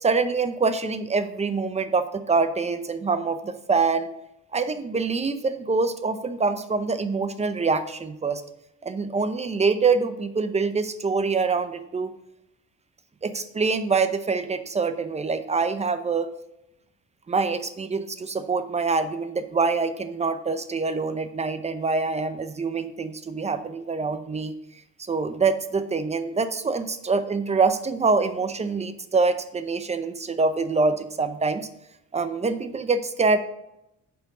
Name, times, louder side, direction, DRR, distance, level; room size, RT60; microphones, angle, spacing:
voice 1, 0.0-4.1 4.5-8.4 8.8-12.1 13.2-16.3 17.3-24.5 25.1-31.6 32.1-33.4, right 4 dB, 20° right, 10 dB, 0.7 m, -25 dB
7.0 x 5.2 x 4.7 m, 0.85 s
cardioid pair, 90°, 30 cm